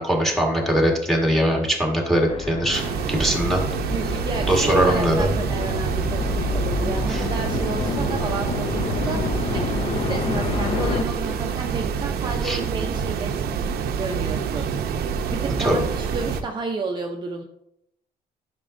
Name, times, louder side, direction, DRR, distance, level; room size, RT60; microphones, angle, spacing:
voice 1, 0.0-2.8 3.1-3.6 4.5-5.3 7.1-7.2 12.4-12.6 15.6-15.8, equal, ahead, 1 dB, 1.6 m, -21 dB
sound 1, 2.3-11.0, left 5 dB, 35° left, 0.5 m, -29 dB
sound 2, 2.7-16.4, right 7 dB, 85° right, 0.7 m, -27 dB
voice 2, 3.9-13.6 14.0-17.4, right 4 dB, 30° right, 2 dB, 0.6 m, -31 dB
11.0 x 6.0 x 2.6 m, 0.77 s
cardioid pair, 140°, 16 cm